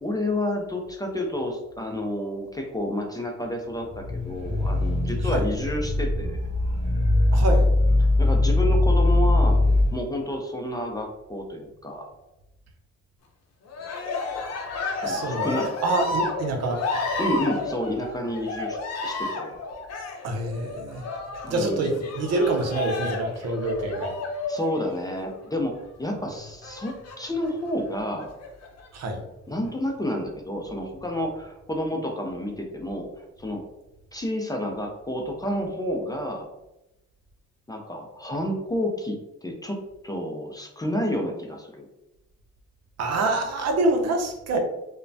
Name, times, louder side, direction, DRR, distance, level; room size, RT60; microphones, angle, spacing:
voice 1, 0.0-6.4 8.2-9.6 9.9-12.1 15.0-15.8 17.2-18.8 19.0-19.6 21.4-22.0 23.4-23.6 24.5-28.3 29.5-33.6 34.1-36.5 37.7-41.9, left 1 dB, 15° left, 1 dB, 0.4 m, -30 dB
sound 1, 3.8-9.9, left 2 dB, 25° right, 1.3 m, -21 dB
voice 2, 7.3-7.7 15.0-15.5 15.8-16.9 20.2-21.1 21.5-24.2 28.9-29.2 43.0-44.6, right 2 dB, 55° right, 4 dB, 0.6 m, -26 dB
Cheering, 13.7-25.4 26.6-27.5 28.2-28.9, left 3 dB, 55° left, 0.7 m, -32 dB
3.1 x 2.1 x 2.6 m, 0.93 s
cardioid pair, 90°, 30 cm